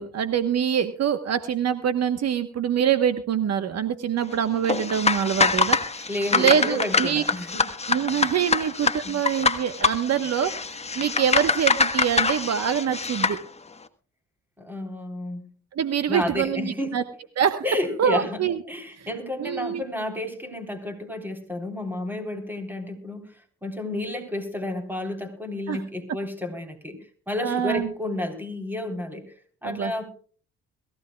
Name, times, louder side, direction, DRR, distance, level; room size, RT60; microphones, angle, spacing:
voice 1, 0.0-6.1 6.3-7.2 7.9-13.4 15.7-17.0 17.4-17.6 18.0-18.6 19.0-19.1 19.4-19.8 25.7-25.8 27.4-27.9 29.6-29.9, right 8 dB, 60° right, 10 dB, 1.2 m, -25 dB
sound 1, 4.6-13.4, left 4 dB, 20° left, 1.4 m, -25 dB
voice 2, 6.1-7.6 8.5-8.6 9.0-9.1 14.6-15.4 16.1-17.0 17.6-18.4 18.7-23.3 23.6-29.3 29.6-30.1, left 1 dB, 5° right, 6 dB, 3.8 m, -31 dB
22.0 x 16.0 x 2.3 m, 0.41 s
cardioid pair, 90°, 30 cm